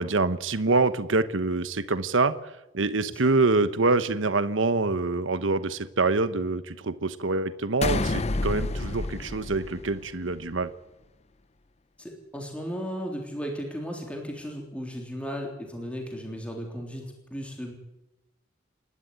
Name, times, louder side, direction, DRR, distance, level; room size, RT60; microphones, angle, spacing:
voice 1, 0.0-2.3 2.7-10.7, right 3 dB, 85° right, 12 dB, 1.1 m, -25 dB
sound 1, 7.8-10.4, left 2 dB, 35° left, 0.7 m, -29 dB
voice 2, 12.0-17.7, equal, 5° left, 1 dB, 3.5 m, -35 dB
28.5 x 12.5 x 9.4 m, 0.96 s
head